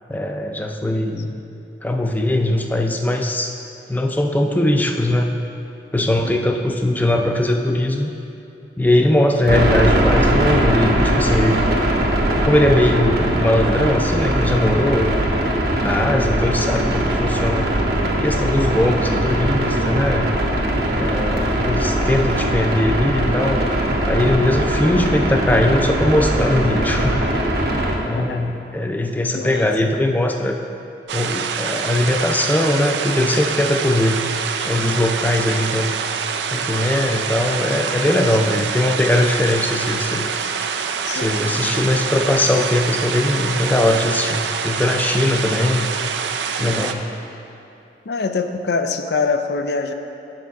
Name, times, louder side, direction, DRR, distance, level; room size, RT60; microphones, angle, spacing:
voice 1, 0.1-1.4 1.8-3.5 3.9-5.3 5.9-8.1 8.8-11.6 12.4-15.1 15.8-17.7 18.2-20.3 21.0-23.6 24.1-27.4 28.1-30.5 31.1-34.2 34.6-36.0 36.5-40.3 41.1-45.9 46.6-47.0, left 1 dB, 10° left, 3 dB, 0.4 m, -20 dB
sound 1, 9.5-28.0, right 1 dB, 60° right, 1.1 m, -20 dB
voice 2, 28.0-28.4 29.3-29.7 41.0-41.5 46.6-46.9 48.1-49.9, left 4 dB, 65° left, 7 dB, 0.4 m, -25 dB
sound 2, 31.1-46.9, right 6 dB, 80° right, 0.4 m, -25 dB
7.7 x 6.8 x 4.7 m, 2.8 s
head